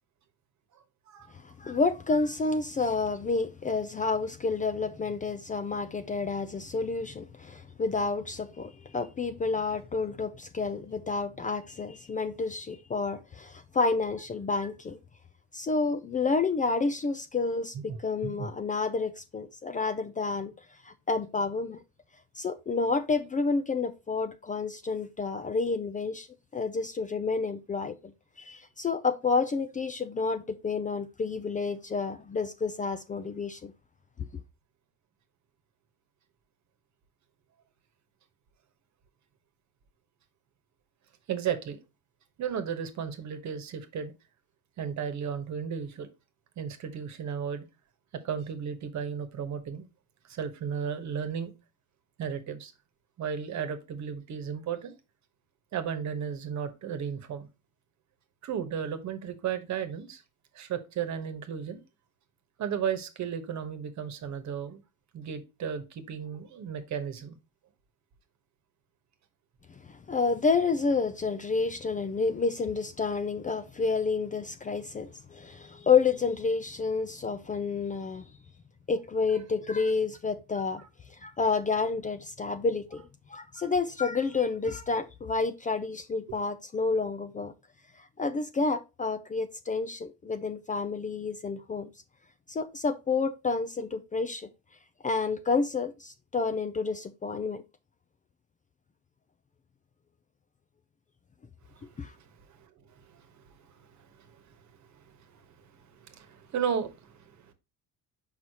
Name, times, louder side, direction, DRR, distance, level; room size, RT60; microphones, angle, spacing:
voice 1, 1.3-15.0 15.5-20.5 20.8-21.8 22.4-26.3 26.5-33.7 69.7-78.3 78.9-80.8 81.1-83.0 83.3-87.5 88.0-91.9 92.5-94.5 95.0-97.6 102.0-102.1, left 4 dB, 25° left, 0.4 m, -29 dB
voice 2, 17.7-18.5 41.3-41.8 42.4-44.1 44.8-46.1 46.6-47.6 48.2-49.9 50.2-51.5 52.2-52.7 53.2-54.9 55.7-57.5 58.4-60.2 60.5-61.8 62.6-64.8 65.1-67.4 80.8-80.9 83.6-83.7 86.3-86.4 101.7-107.5, right 7 dB, 55° right, 1.2 m, -35 dB
6.4 x 5.5 x 2.8 m
cardioid pair, 140°, 35 cm